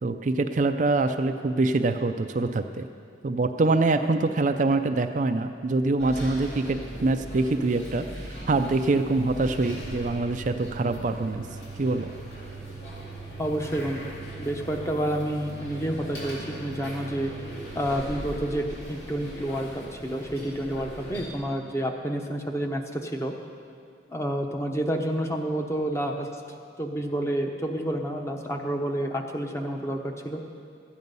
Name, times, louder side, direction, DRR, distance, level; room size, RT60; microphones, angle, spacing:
voice 1, 0.0-2.8 3.2-11.5 11.8-12.1, right 3 dB, 45° right, 7 dB, 0.4 m, -25 dB
sound 1, 6.0-21.3, right 1 dB, 65° left, 2.7 m, -39 dB
voice 2, 13.4-17.3 17.7-23.3 24.1-26.3 26.8-30.4, right 1 dB, 15° left, 2 dB, 0.8 m, -29 dB
13.5 x 9.4 x 5.4 m, 2.3 s
head